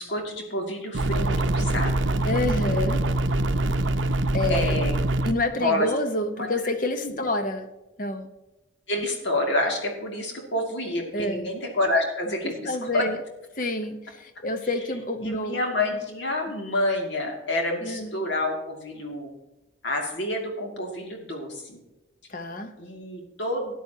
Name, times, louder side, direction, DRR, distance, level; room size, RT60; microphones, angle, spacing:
voice 1, 0.0-2.1 4.5-4.9 5.6-5.9 6.4-6.5 7.0-7.1 8.9-13.1 15.2-19.3 19.8-21.8 22.8-23.7, left 1 dB, 70° left, 1 dB, 2.6 m, -28 dB
sound 1, 0.9-5.3, right 1 dB, 80° right, 0.7 m, -24 dB
voice 2, 2.3-3.0 4.3-4.8 5.2-7.7 8.0-8.3 11.1-11.5 12.4-13.2 13.6-15.6 17.8-18.2 22.3-22.7, left 1 dB, 45° left, 8 dB, 1.1 m, -28 dB
13.5 x 10.5 x 2.9 m, 1.0 s
head